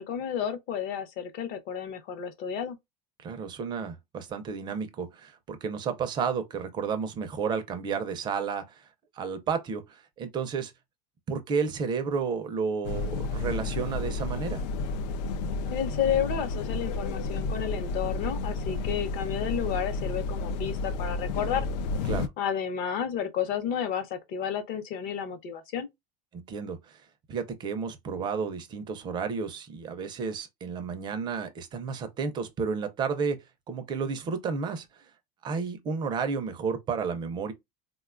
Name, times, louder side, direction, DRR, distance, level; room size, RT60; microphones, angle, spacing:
voice 1, 0.0-2.8 15.7-21.7 22.4-25.9, left 8 dB, 45° left, 0.7 m, -31 dB
voice 2, 3.2-8.9 9.1-10.7 11.3-14.6 22.1-22.3 26.3-27.0 27.3-33.4 33.7-34.9 35.4-37.5, right 5 dB, 20° right, 0.4 m, -32 dB
sound 1, 12.8-22.3, left 3 dB, 85° left, 0.5 m, -31 dB
3.7 x 2.2 x 2.4 m
supercardioid pair, 165°, 21 cm